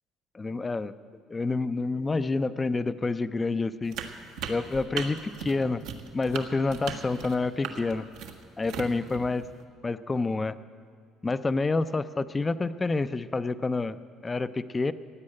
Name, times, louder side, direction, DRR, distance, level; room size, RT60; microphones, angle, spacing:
voice 1, 0.3-0.9 1.3-4.0 4.5-5.8 6.1-8.1 8.6-9.4 9.8-10.6 11.2-14.9, left 3 dB, 20° left, 14 dB, 0.5 m, -28 dB
sound 1, 3.9-9.6, right 7 dB, 80° right, 1.4 m, -38 dB
16.5 x 8.8 x 8.6 m, 2.1 s
cardioid pair, 110°, 0 cm